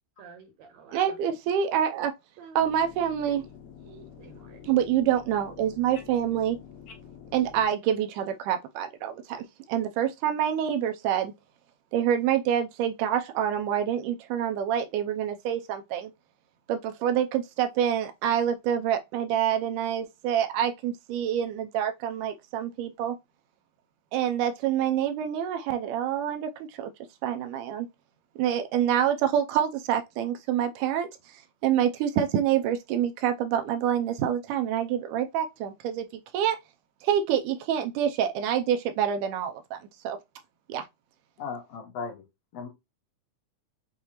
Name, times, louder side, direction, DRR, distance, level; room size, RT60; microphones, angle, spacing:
voice 1, 0.2-1.2 2.4-2.6 3.8-4.6, right 5 dB, 70° right, 1.9 m, -50 dB
voice 2, 0.9-2.1 2.6-3.4 4.6-6.6 7.3-11.3 11.9-16.1 16.7-23.2 24.1-26.9 27.2-27.9 28.4-36.1 36.3-36.6 37.0-39.8 40.0-40.2 40.7-40.8, right 9 dB, 90° right, 2.1 m, -27 dB
sound 1, 2.6-7.7, left 8 dB, 90° left, 2.5 m, -48 dB
voice 3, 41.4-42.2 42.5-42.7, left 5 dB, 60° left, 2.2 m, -36 dB
6.4 x 2.6 x 2.9 m
omnidirectional pair, 3.6 m